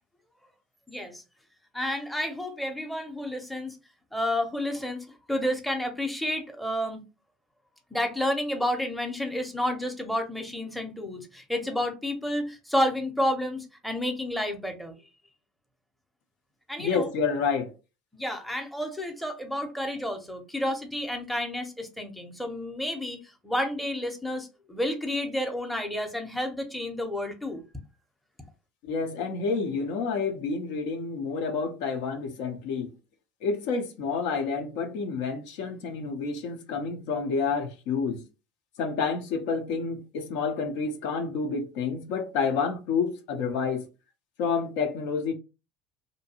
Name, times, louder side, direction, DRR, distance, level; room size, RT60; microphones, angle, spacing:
voice 1, 0.9-1.2 1.7-3.8 4.1-7.0 7.9-14.9 16.7-17.1 18.1-27.6, left 1 dB, ahead, 0.7 m, -30 dB
voice 2, 16.8-17.7 28.8-32.9 33.4-38.2 38.8-43.9 44.4-45.3, left 5 dB, 75° left, 0.6 m, -29 dB
2.7 x 2.2 x 2.7 m
supercardioid pair, 95°, 2 cm